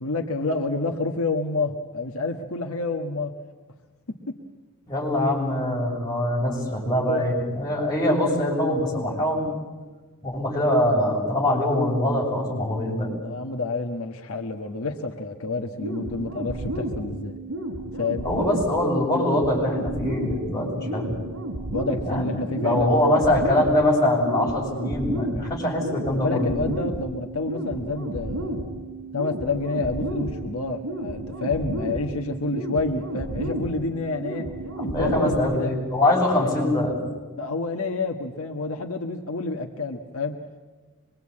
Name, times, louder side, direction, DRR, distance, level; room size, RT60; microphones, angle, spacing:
voice 1, 0.0-3.3 4.1-4.2 7.0-7.3 13.2-17.4 18.0-18.3 21.7-23.0 26.1-28.7 29.1-34.5 34.8-35.7 36.2-36.5 37.4-40.4, left 3 dB, 70° left, 2 dB, 1.4 m, -28 dB
voice 2, 4.9-9.5 10.2-13.1 18.2-21.1 22.0-26.5 34.7-37.0, left 1 dB, 15° left, -4 dB, 7.1 m, -23 dB
sound 1, 15.8-35.8, right 1 dB, 75° right, 5.1 m, -32 dB
24.5 x 22.5 x 8.7 m, 1.4 s
head